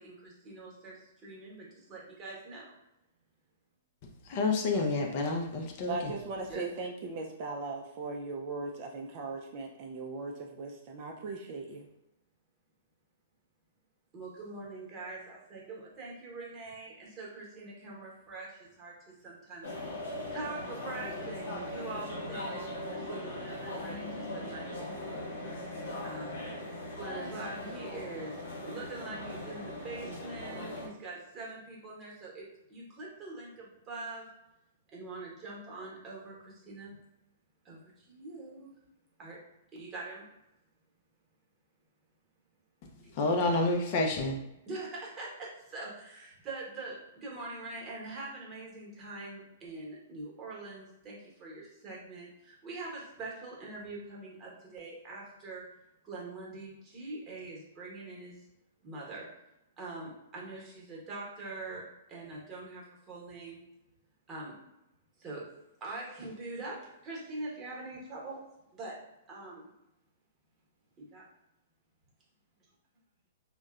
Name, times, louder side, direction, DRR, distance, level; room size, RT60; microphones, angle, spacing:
voice 1, 0.0-2.6 6.5-6.6 14.1-24.9 25.9-26.4 26.9-34.3 34.9-36.9 37.6-38.7 39.2-39.4 39.7-40.2 44.7-55.6 56.0-58.5 58.8-59.3 59.8-63.6 64.3-64.5 65.2-65.4 65.8-66.8 67.0-68.4 68.7-69.0 69.3-69.7 71.0-71.2, right 2 dB, 25° right, -3 dB, 0.9 m, -43 dB
voice 2, 4.3-6.0 43.2-44.4, left 3 dB, 50° left, 2 dB, 0.4 m, -28 dB
voice 3, 5.9-11.9, right 3 dB, 45° right, 1 dB, 0.3 m, -38 dB
sound 1, 19.6-30.9, left 1 dB, 90° left, 0.8 m, -39 dB
2.6 x 2.1 x 2.3 m, 0.87 s
hypercardioid pair, 125°, 0 cm